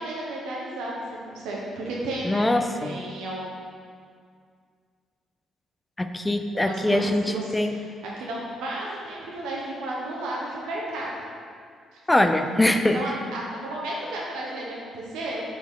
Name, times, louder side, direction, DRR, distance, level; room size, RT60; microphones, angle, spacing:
voice 1, 0.0-2.5 2.8-3.4 6.5-11.1 11.9-12.0 12.9-15.4, right 1 dB, 90° right, -3 dB, 0.9 m, -33 dB
voice 2, 2.2-3.0 6.0-7.7 12.1-13.0, left 1 dB, 15° left, 7 dB, 0.4 m, -23 dB
7.1 x 4.1 x 3.6 m, 2.1 s
cardioid pair, 90°, 0 cm